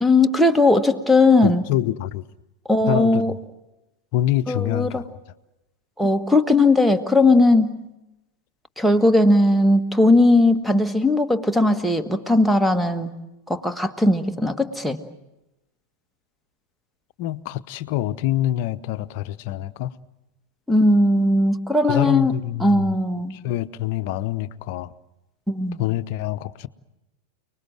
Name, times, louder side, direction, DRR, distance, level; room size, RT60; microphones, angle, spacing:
voice 1, 0.0-1.6 2.7-3.3 4.5-5.0 6.0-7.8 8.8-13.1 13.5-15.0 20.7-23.4 25.5-25.8, left 2 dB, ahead, 1.5 m, -18 dB
voice 2, 1.4-2.2 2.9-3.2 4.1-5.0 17.2-19.9 21.9-22.9 23.3-24.9 25.8-26.7, left 13 dB, 45° left, 0.8 m, -25 dB
29.5 x 20.5 x 7.8 m
figure-of-eight pair, 90°, 0 cm